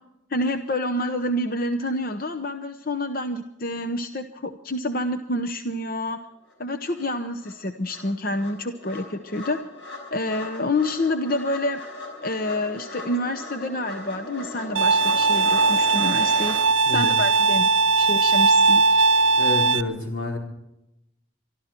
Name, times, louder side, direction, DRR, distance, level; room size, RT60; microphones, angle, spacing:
voice 1, 0.3-6.2 6.6-9.6 10.1-11.8 12.2-16.6 16.9-17.7 18.0-19.0, left 1 dB, 45° left, 8 dB, 0.8 m, -28 dB
sound 1, 6.5-6.6 6.9-16.6, left 2 dB, 65° left, 5.3 m, -38 dB
Bowed string instrument, 14.8-19.8, right 4 dB, 75° right, 0.5 m, -19 dB
voice 2, 19.4-20.4, left 2 dB, 85° left, 0 dB, 4.4 m, -29 dB
24.5 x 13.0 x 4.4 m, 0.88 s
head